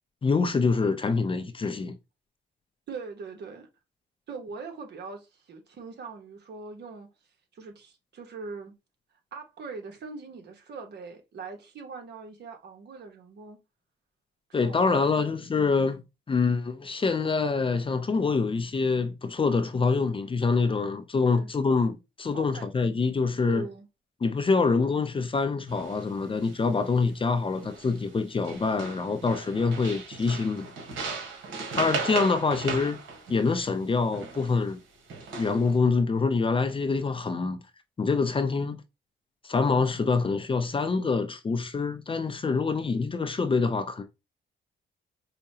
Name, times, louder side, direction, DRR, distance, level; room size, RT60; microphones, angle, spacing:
voice 1, 0.2-2.0 14.5-16.0 16.3-23.6 24.2-30.7 31.7-33.0 33.3-34.8 35.4-37.6 38.0-38.8 39.4-44.0, left 4 dB, 25° left, 0.6 m, -25 dB
voice 2, 2.9-3.7 4.3-7.1 7.5-8.7 9.3-13.6 14.5-16.0 21.2-21.5 22.3-22.7 23.4-23.9, right 4 dB, 60° right, 1.1 m, -41 dB
sound 1, 25.7-26.0 26.4-27.1 27.6-28.2 28.4-34.6 35.1-35.7, right 4 dB, 75° right, 1.3 m, -37 dB
4.8 x 2.2 x 2.8 m
cardioid pair, 90°, 20 cm